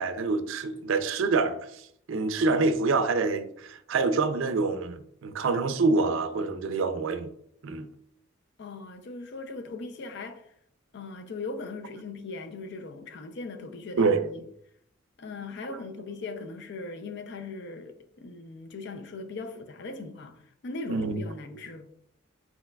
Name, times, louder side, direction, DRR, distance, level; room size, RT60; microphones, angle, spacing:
voice 1, 0.0-1.7 2.1-7.3 7.6-7.9 14.0-14.3 20.9-21.2, right 3 dB, 70° right, 0.4 m, -26 dB
voice 2, 8.6-10.5 10.9-14.5 15.2-21.8, left 3 dB, 55° left, 0.5 m, -39 dB
4.5 x 4.0 x 2.3 m
head